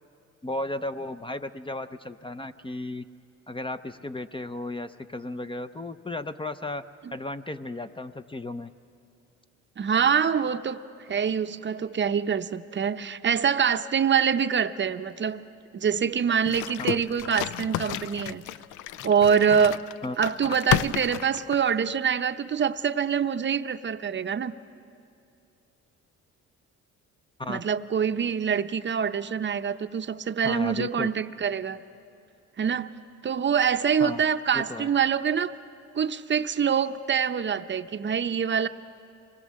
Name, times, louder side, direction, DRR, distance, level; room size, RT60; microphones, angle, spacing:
voice 1, 0.4-3.0 3.5-6.8 7.1-8.7 16.8-17.0 20.0-20.2 27.4-27.6 30.4-31.1 34.0-34.2 34.5-34.9, left 2 dB, 15° left, 10 dB, 0.6 m, -34 dB
voice 2, 9.8-10.8 11.1-15.4 15.7-18.4 19.0-19.8 20.2-24.5 27.5-31.8 32.6-32.9 33.2-35.5 36.0-38.7, right 7 dB, 40° right, 10 dB, 0.7 m, -25 dB
sound 1, 16.5-21.9, left 12 dB, 85° left, 0.5 m, -31 dB
25.0 x 20.0 x 7.5 m, 2.5 s
cardioid pair, 90°, 30 cm